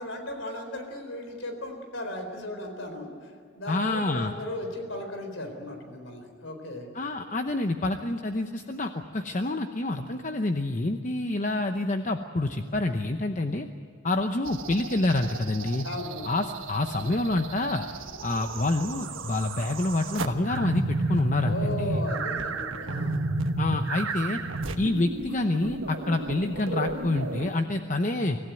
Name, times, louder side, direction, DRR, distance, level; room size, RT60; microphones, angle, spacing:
voice 1, 0.0-6.9 15.8-16.3 21.4-23.2, left 1 dB, 80° left, 5 dB, 4.2 m, -36 dB
voice 2, 3.7-4.3 6.9-13.7 14.0-15.9 16.2-17.9 18.2-22.0 23.6-24.4 24.8-28.4, left 2 dB, 40° left, 6 dB, 0.8 m, -27 dB
sound 1, 14.5-27.5, right 2 dB, 90° right, 1.4 m, -32 dB
25.0 x 15.5 x 9.2 m, 2.3 s
head